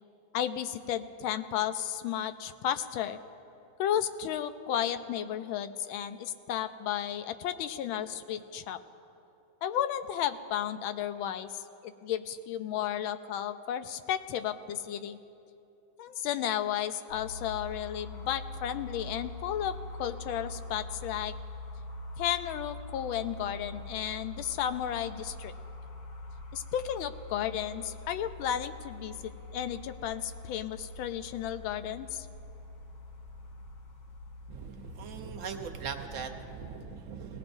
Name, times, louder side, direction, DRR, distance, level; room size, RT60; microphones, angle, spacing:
voice 1, 0.3-3.2 3.8-8.8 9.6-15.2 16.0-21.3 22.2-25.5 26.5-32.3, left 10 dB, 90° left, 11 dB, 1.4 m, -33 dB
sound 1, 17.1-36.1, left 2 dB, 50° left, 1.3 m, -44 dB
voice 2, 34.5-37.4, right 6 dB, 55° right, 4 dB, 0.9 m, -40 dB
19.5 x 17.5 x 2.6 m, 2.8 s
omnidirectional pair, 2.1 m